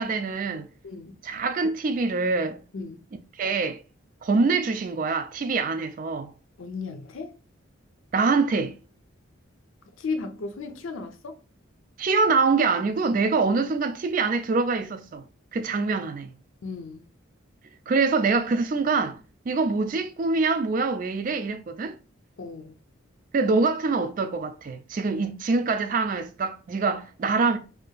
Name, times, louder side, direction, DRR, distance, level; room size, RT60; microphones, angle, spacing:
voice 1, 0.0-0.7 1.2-2.6 3.4-3.8 4.2-6.3 8.1-8.8 12.0-15.2 15.5-16.3 17.9-19.2 19.5-22.0 23.3-27.6, right 4 dB, 40° right, 0.3 m, -24 dB
voice 2, 0.8-1.2 2.7-3.1 6.6-7.3 10.0-11.4 16.6-17.1 22.4-22.8, left 4 dB, 70° left, 0.5 m, -35 dB
2.8 x 2.4 x 2.2 m
head